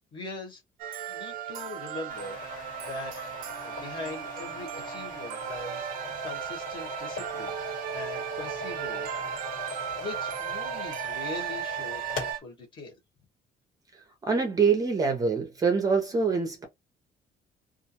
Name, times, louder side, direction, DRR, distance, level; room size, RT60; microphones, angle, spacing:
voice 1, 0.1-0.6 1.1-2.4 2.9-3.1 3.6-5.9 6.2-7.5 7.9-9.2 9.9-12.9, left 3 dB, 30° left, 1.1 m, -41 dB
sound 1, 0.8-12.4, right 10 dB, 75° right, 0.4 m, -36 dB
sound 2, 2.1-12.3, left 3 dB, 70° left, 1.5 m, -40 dB
voice 2, 14.3-16.6, right 5 dB, 25° right, 0.6 m, -25 dB
2.4 x 2.2 x 2.7 m
cardioid pair, 175°, 15 cm